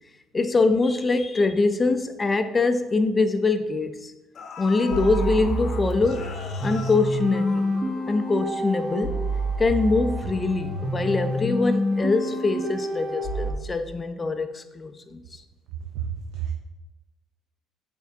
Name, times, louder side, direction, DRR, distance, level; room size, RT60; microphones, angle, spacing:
voice 1, 0.3-4.1 4.6-6.3 6.6-7.6 8.1-9.2 9.6-15.4, left 3 dB, 20° left, 8 dB, 0.5 m, -23 dB
sound 1, 2.2-2.3 2.7-2.8 3.9-4.0 4.3-8.3 8.6-8.7, left 4 dB, 45° left, 0.8 m, -39 dB
sound 2, 4.9-13.5, equal, 20° right, 1.2 m, -28 dB
voice 2, 15.9-16.5, right 8 dB, 85° right, 3 dB, 0.5 m, -30 dB
8.9 x 4.5 x 2.7 m, 1.1 s
cardioid pair, 135°, 0 cm